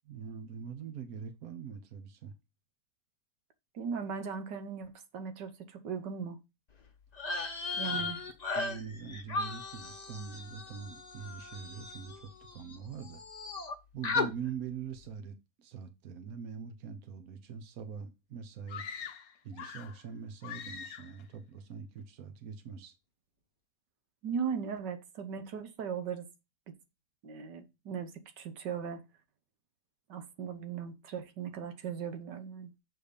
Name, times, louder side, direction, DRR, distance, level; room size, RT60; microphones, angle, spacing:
voice 1, 0.0-2.4 7.9-8.1 8.5-13.2 13.9-15.4 15.6-18.8 19.4-22.9, right 7 dB, 60° right, 1.4 m, -43 dB
voice 2, 3.7-6.4 7.7-8.2 24.2-26.3 26.7-26.8 27.2-29.0 30.1-32.7, right 6 dB, 80° right, 1.7 m, -38 dB
sound 1, 7.1-12.8 13.0-13.7 14.0-14.3, left 3 dB, 30° left, 0.9 m, -36 dB
sound 2, 18.7-20.0 20.4-21.2, left 7 dB, 60° left, 1.2 m, -43 dB
6.8 x 4.2 x 5.1 m
omnidirectional pair, 1.8 m